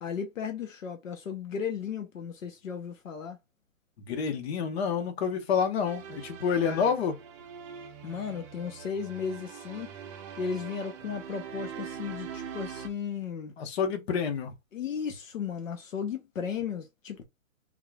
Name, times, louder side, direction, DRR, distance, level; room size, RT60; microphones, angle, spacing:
voice 1, 0.0-3.4 6.6-7.0 8.0-9.9 10.4-13.5 14.7-17.2, left 7 dB, 80° left, 1.0 m, -35 dB
voice 2, 4.1-7.2 13.6-14.5, left 6 dB, 50° left, 1.2 m, -28 dB
sound 1, 5.8-12.9, right 8 dB, 25° right, 0.6 m, -43 dB
3.7 x 3.2 x 2.3 m
hypercardioid pair, 140°, 39 cm